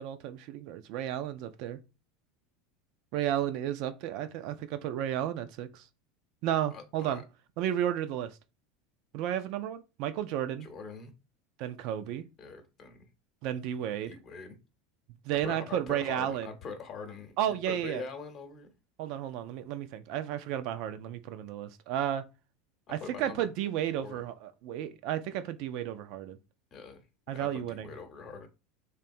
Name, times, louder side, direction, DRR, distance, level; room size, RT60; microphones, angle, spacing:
voice 1, 0.0-1.8 3.1-5.8 6.4-7.2 7.6-8.4 9.1-10.7 11.6-12.2 13.4-14.1 15.2-16.5 17.4-18.0 19.0-22.2 22.9-26.4 27.3-27.9, right 11 dB, 60° right, 0.3 m, -33 dB
voice 2, 6.7-7.2 10.6-11.1 12.4-13.1 14.0-14.6 15.4-18.7 23.0-23.5 24.0-24.2 26.7-27.0 27.3-28.5, left 4 dB, 40° left, 0.8 m, -43 dB
2.9 x 2.2 x 2.6 m
hypercardioid pair, 85°, 0 cm